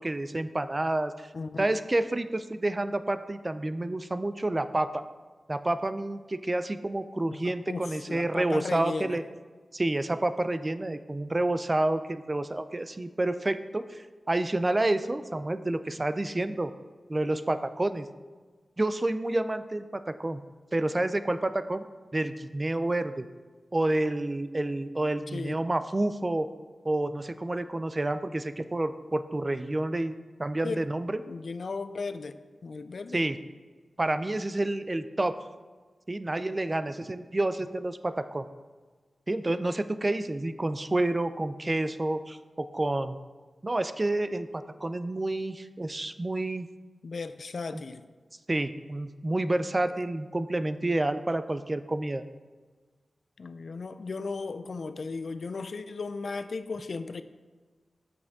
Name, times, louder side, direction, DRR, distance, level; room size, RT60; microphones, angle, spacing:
voice 1, 0.0-1.3 1.6-5.0 5.5-9.2 9.7-16.7 17.1-18.1 18.8-20.4 20.7-21.9 22.1-23.3 23.7-26.5 26.8-30.1 30.4-31.2 33.1-33.4 34.0-35.3 36.1-38.5 39.3-43.2 43.6-46.7 47.7-47.8 48.5-52.2, right 2 dB, 25° right, 11 dB, 0.3 m, -29 dB
voice 2, 1.3-1.7 7.3-9.2 16.5-16.6 25.3-25.5 30.6-30.9 31.2-32.3 32.6-33.2 47.0-48.0 49.9-50.0 53.4-57.2, left 4 dB, 65° left, 12 dB, 0.4 m, -36 dB
7.6 x 6.0 x 3.6 m, 1.4 s
wide cardioid pair, 115°, 0 cm